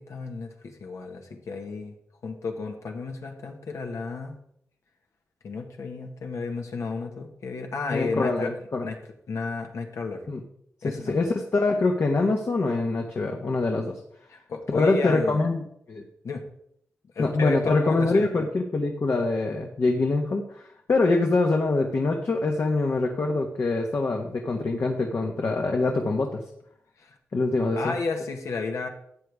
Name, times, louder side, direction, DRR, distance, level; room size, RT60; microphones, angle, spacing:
voice 1, 0.0-1.9 2.2-4.4 5.4-8.5 8.8-9.0 9.3-10.2 10.8-11.2 14.3-15.5 16.2-16.5 17.2-18.5 27.0-27.2 27.8-28.9, left 4 dB, 80° left, 3 dB, 1.6 m, -32 dB
voice 2, 7.9-8.9 10.3-10.4 10.8-14.0 14.7-15.6 15.9-16.0 17.2-26.4 27.3-28.0, left 3 dB, 60° left, 2 dB, 1.2 m, -24 dB
13.0 x 8.2 x 3.6 m, 0.70 s
cardioid pair, 55°, 5 cm